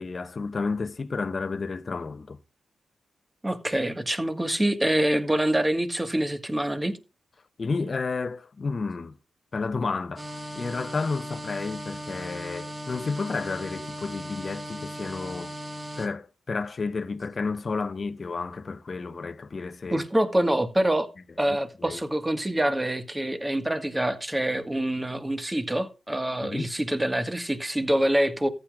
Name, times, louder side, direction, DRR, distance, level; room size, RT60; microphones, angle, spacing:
voice 1, 0.0-2.4 7.6-9.1 9.5-15.5 16.0-20.0 21.8-22.0 26.4-26.7, left 4 dB, 50° left, 0.8 m, -31 dB
voice 2, 3.4-7.0 19.9-21.1 21.4-28.5, right 1 dB, 15° right, 1.7 m, -25 dB
sound 1, 10.2-16.1, equal, 35° right, 2.3 m, -37 dB
14.5 x 9.2 x 2.5 m
supercardioid pair, 45°, 0 cm